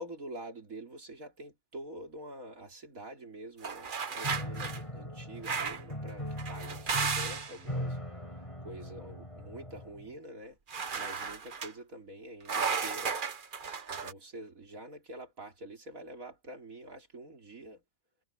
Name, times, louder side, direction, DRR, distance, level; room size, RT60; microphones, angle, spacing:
voice 1, 0.0-8.0 8.6-10.6 11.0-13.2 13.9-17.8, right 1 dB, 55° right, 4.0 m, -46 dB
sound 1, 3.6-4.8 5.4-5.9 6.4-7.6 10.7-11.7 12.4-14.1, right 5 dB, 35° right, 1.0 m, -34 dB
Piano, 4.2-10.2, equal, 20° left, 7.8 m, -40 dB
omnidirectional pair, 1.8 m